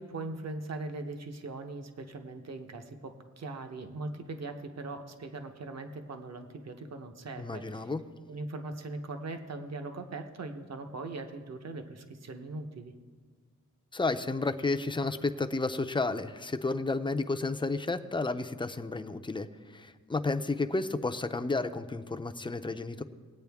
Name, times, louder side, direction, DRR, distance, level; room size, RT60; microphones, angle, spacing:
voice 1, 0.0-7.9 8.3-12.9, right 2 dB, 55° right, 6 dB, 0.9 m, -40 dB
voice 2, 7.4-8.0 13.9-23.0, left 3 dB, 15° left, 8 dB, 0.4 m, -32 dB
19.5 x 8.8 x 3.5 m, 1.5 s
wide cardioid pair, 140°, 32 cm